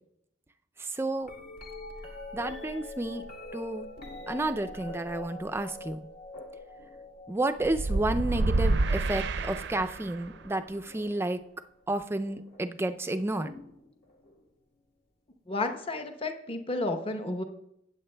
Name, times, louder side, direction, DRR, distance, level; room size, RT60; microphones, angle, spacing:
voice 1, 0.8-1.3 2.3-3.3 3.5-3.9 4.3-6.0 7.3-11.4 11.9-13.6, right 2 dB, 15° right, 9 dB, 0.4 m, -31 dB
sound 1, 1.2-11.3 12.3-12.7 13.4-14.4 16.2-16.3, left 2 dB, 60° left, 1.9 m, -45 dB
sound 2, 7.6-10.3, right 2 dB, 65° right, 0.5 m, -28 dB
voice 2, 15.5-17.4, left 2 dB, 30° left, 6 dB, 0.8 m, -32 dB
15.5 x 8.5 x 2.2 m, 0.78 s
head